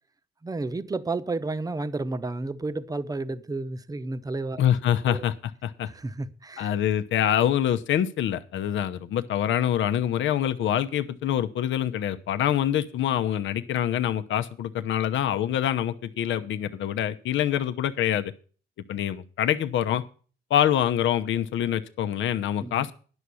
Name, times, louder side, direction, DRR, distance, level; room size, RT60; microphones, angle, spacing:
voice 1, 0.4-4.6 5.1-5.3 5.9-6.7 22.6-22.8, right 3 dB, 20° right, 0.9 m, -31 dB
voice 2, 4.6-5.9 6.6-18.3 18.9-20.0 20.5-22.9, left 10 dB, 75° left, 0.9 m, -25 dB
11.0 x 6.3 x 8.3 m
cardioid pair, 90°, 20 cm